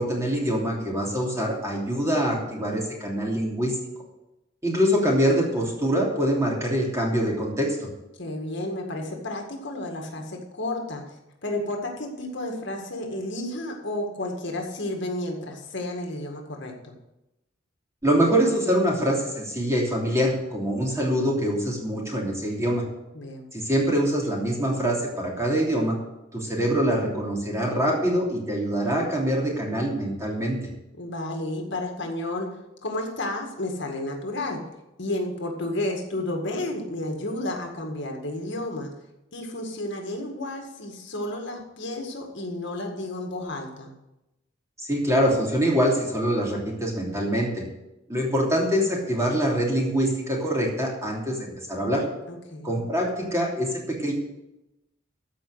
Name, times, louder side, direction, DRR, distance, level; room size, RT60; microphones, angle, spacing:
voice 1, 0.0-3.8 4.6-7.8 18.0-22.8 23.5-26.0 26.3-30.6 44.9-47.6 48.1-52.0 52.6-54.1, equal, 15° right, -2 dB, 2.9 m, -24 dB
voice 2, 8.2-16.9 23.1-23.5 31.0-32.5 32.8-34.6 35.0-38.9 39.3-43.9 52.3-52.9, left 1 dB, 65° left, 2 dB, 2.0 m, -32 dB
14.5 x 5.1 x 8.0 m, 0.93 s
head